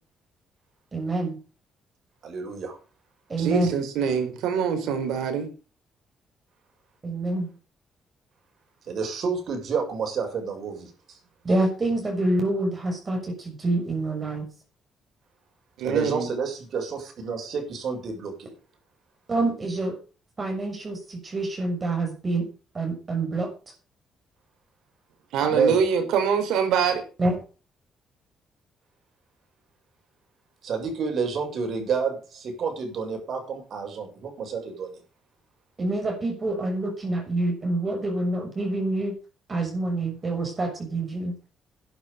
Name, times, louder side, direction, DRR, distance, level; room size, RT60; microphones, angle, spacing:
voice 1, 0.9-1.4 3.3-3.7 7.0-7.5 11.4-14.4 19.3-20.0 20.4-22.5 22.7-23.5 27.2-27.3 35.8-39.1 39.5-41.4, right 2 dB, 30° right, 2 dB, 6.7 m, -26 dB
voice 2, 2.2-2.8 8.8-11.2 15.8-18.5 25.4-25.8 30.6-35.0, right 5 dB, 60° right, 4 dB, 7.5 m, -29 dB
voice 3, 3.4-5.5 15.8-16.3 25.3-27.0, right 7 dB, 85° right, 7 dB, 4.7 m, -24 dB
12.0 x 10.0 x 7.0 m, 0.36 s
cardioid pair, 90°, 0 cm